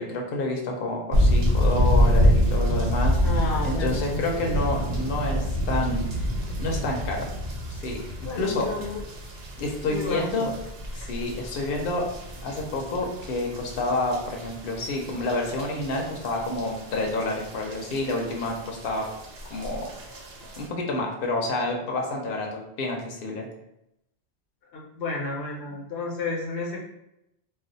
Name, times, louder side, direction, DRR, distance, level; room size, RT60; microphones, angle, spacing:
voice 1, 0.0-3.4 3.6-6.1 6.6-7.3 7.7-8.7 9.6-10.5 10.9-12.1 12.4-19.1 19.5-20.2 20.6-23.5, left 2 dB, 60° left, 0 dB, 0.8 m, -29 dB
sound 1, 1.1-20.7, equal, 70° right, 0.9 m, -27 dB
voice 2, 3.2-4.2 4.4-4.5 8.2-9.0 9.8-10.5 24.7-26.8, left 3 dB, 85° left, -1 dB, 1.0 m, -31 dB
2.4 x 2.3 x 3.8 m, 0.84 s
omnidirectional pair, 1.1 m